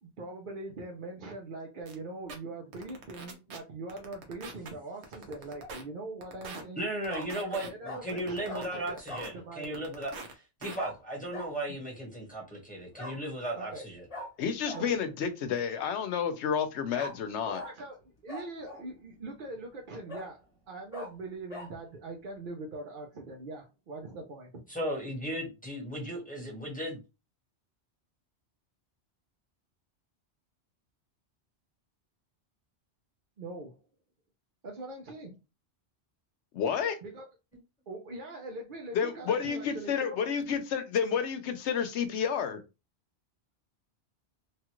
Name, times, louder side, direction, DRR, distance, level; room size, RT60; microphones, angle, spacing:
voice 1, 0.0-6.8 7.3-9.0 9.3-9.8 11.7-11.8 13.5-13.8 14.7-15.0 17.5-24.6 33.4-33.8 34.6-35.4 37.0-37.2 37.9-40.3, right 2 dB, 55° right, 0.7 m, -42 dB
sound 1, 1.9-2.0 2.3-2.4 2.7-3.6 3.9-4.7 5.0-5.8 6.2-6.6 7.0-7.7 8.1-9.3 9.6-10.3 10.6-10.8, right 3 dB, 80° right, 1.1 m, -43 dB
Bark, 5.4-5.8 7.1-7.3 7.8-8.0 8.5-8.7 9.1-9.3 10.8-10.9 11.3-11.5 12.9-13.2 14.1-14.3 14.7-14.8 16.9-17.1 17.5-17.7 18.3-18.9 19.4-19.5 20.1-20.3 20.9-21.1 21.5-21.7, left 1 dB, 30° left, 1.2 m, -41 dB
voice 2, 6.7-10.1 10.6-14.0 24.7-27.0, right 1 dB, 10° left, 1.1 m, -36 dB
voice 3, 14.4-17.6 36.5-37.0 38.9-42.6, left 7 dB, 80° left, 0.9 m, -30 dB
3.1 x 2.4 x 3.0 m
omnidirectional pair, 1.2 m